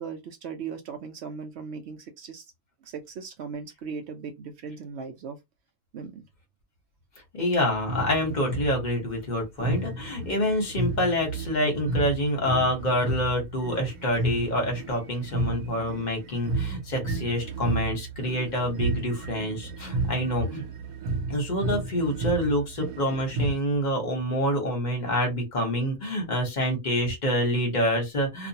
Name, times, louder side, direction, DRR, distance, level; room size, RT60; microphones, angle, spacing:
voice 1, 0.0-2.5 2.8-5.4 5.9-6.2, right 5 dB, 70° right, 0.6 m, -38 dB
voice 2, 7.3-20.6 21.3-28.5, equal, 35° left, 0.9 m, -27 dB
sound 1, 7.7-9.1 9.6-23.5, right 2 dB, 90° right, 1.2 m, -32 dB
2.5 x 2.3 x 2.7 m
omnidirectional pair, 1.6 m